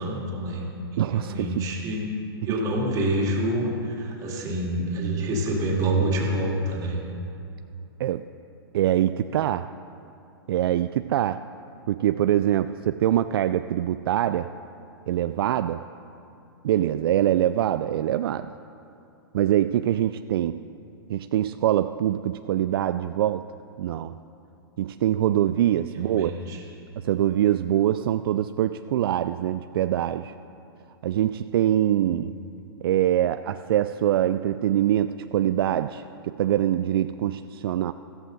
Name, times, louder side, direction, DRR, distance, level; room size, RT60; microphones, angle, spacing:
voice 1, 0.0-2.1 2.4-7.0 26.1-26.6 32.0-32.3, right 1 dB, 25° right, -1 dB, 2.5 m, -27 dB
voice 2, 1.0-1.7 8.0-8.3 8.7-9.7 10.5-11.4 11.9-14.5 15.1-15.8 16.6-18.5 19.3-20.6 21.1-23.5 23.8-24.1 24.8-26.3 27.0-30.3 31.0-32.4 32.8-37.9, right 12 dB, 65° right, 11 dB, 0.4 m, -24 dB
14.5 x 13.5 x 4.0 m, 2.7 s
hypercardioid pair, 130°, 13 cm